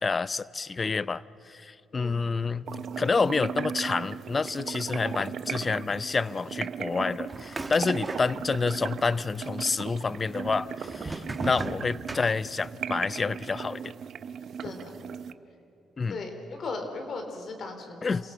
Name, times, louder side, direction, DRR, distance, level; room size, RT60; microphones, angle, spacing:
voice 1, 0.0-2.7 3.0-13.9 16.0-16.2 18.0-18.2, left 4 dB, 30° left, 18 dB, 0.5 m, -28 dB
voice 2, 1.9-2.3 8.1-8.3 11.4-11.6 14.6-15.0 16.1-18.3, left 3 dB, 55° left, 5 dB, 3.9 m, -38 dB
sound 1, 2.7-15.3, right 7 dB, 60° right, 0.7 m, -37 dB
sound 2, 7.3-8.7 9.0-9.7 10.4-12.8, right 2 dB, 20° right, 1.5 m, -37 dB
27.5 x 17.5 x 7.6 m, 2.7 s
cardioid pair, 90°, 0 cm